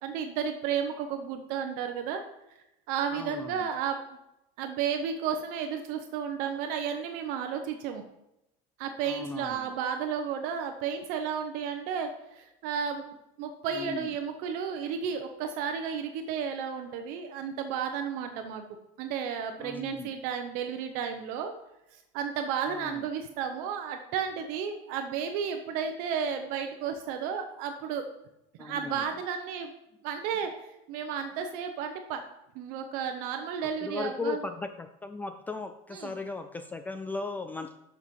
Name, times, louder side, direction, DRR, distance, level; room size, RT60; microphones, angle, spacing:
voice 1, 0.0-2.2 2.9-4.0 4.6-8.0 8.8-18.6 19.0-21.5 21.9-28.0 28.6-29.7 30.0-32.2 32.5-34.4 35.9-36.1, right 7 dB, 65° right, 6 dB, 0.9 m, -33 dB
voice 2, 3.1-3.7 9.0-9.7 13.7-14.1 19.6-20.1 22.7-23.0 28.6-29.1 33.8-37.8, left 4 dB, 10° left, 8 dB, 0.3 m, -37 dB
7.2 x 6.1 x 5.3 m, 0.87 s
cardioid pair, 155°, 16 cm